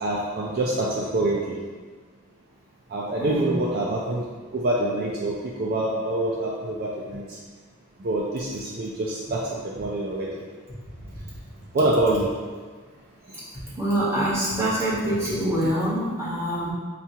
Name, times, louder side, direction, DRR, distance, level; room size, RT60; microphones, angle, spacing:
voice 1, 0.0-1.6 2.9-4.2 4.5-7.2 8.0-10.3 11.7-12.3, right 2 dB, 45° right, -4 dB, 0.4 m, -25 dB
voice 2, 3.2-3.5 13.7-16.7, right 1 dB, 15° right, -10 dB, 1.1 m, -25 dB
5.8 x 2.3 x 2.7 m, 1.5 s
head